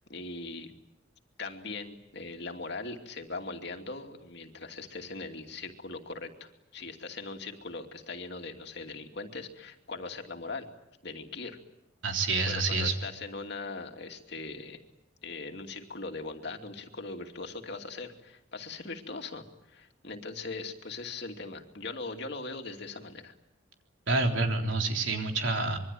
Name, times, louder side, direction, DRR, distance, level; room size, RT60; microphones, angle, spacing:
voice 1, 0.1-0.7 1.4-10.7 11.0-11.6 12.5-14.8 15.2-23.3, left 3 dB, 60° left, 4 dB, 2.7 m, -40 dB
voice 2, 12.0-12.9 24.1-25.8, right 3 dB, 75° right, 3 dB, 3.8 m, -28 dB
26.0 x 23.5 x 9.3 m, 0.89 s
head